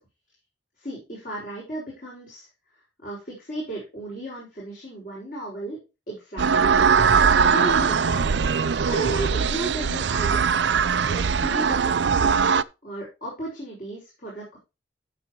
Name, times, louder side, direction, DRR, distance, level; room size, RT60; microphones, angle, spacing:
voice 1, 0.8-2.5 3.0-5.8 6.1-6.9 7.4-8.4 8.8-10.5 11.1-14.6, right 2 dB, 45° left, -4 dB, 5.4 m, -34 dB
sound 1, 6.4-12.6, right 6 dB, 70° right, 0.5 m, -21 dB
13.5 x 7.1 x 3.1 m, 0.27 s
head